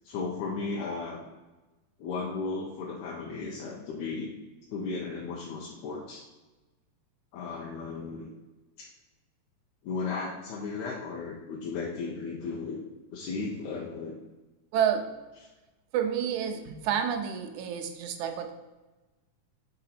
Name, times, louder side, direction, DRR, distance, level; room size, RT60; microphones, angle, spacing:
voice 1, 0.0-1.2 2.0-4.3 4.7-6.2 7.3-8.3 8.8-8.9 9.8-12.8 13.1-14.1, left 4 dB, 85° left, -3 dB, 2.2 m, -35 dB
voice 2, 14.7-15.1 15.9-18.5, right 8 dB, 85° right, 6 dB, 2.1 m, -29 dB
6.7 x 4.1 x 4.1 m, 1.2 s
omnidirectional pair, 3.3 m